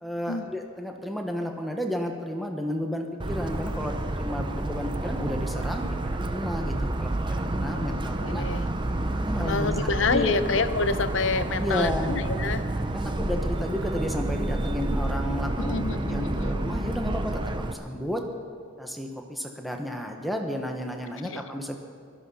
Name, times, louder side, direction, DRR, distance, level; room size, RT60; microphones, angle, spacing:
voice 1, 0.0-8.4 9.3-9.7 10.1-10.4 11.6-12.1 12.9-17.4 17.7-18.2 18.8-21.8, equal, ahead, 2 dB, 1.1 m, -32 dB
Motor vehicle (road) / Siren, 3.2-17.7, right 1 dB, 25° right, 0.6 m, -29 dB
voice 2, 7.8-8.6 9.4-12.6 15.6-16.6 21.2-21.4, left 4 dB, 65° left, 12 dB, 0.7 m, -28 dB
17.0 x 13.0 x 5.6 m, 2.2 s
head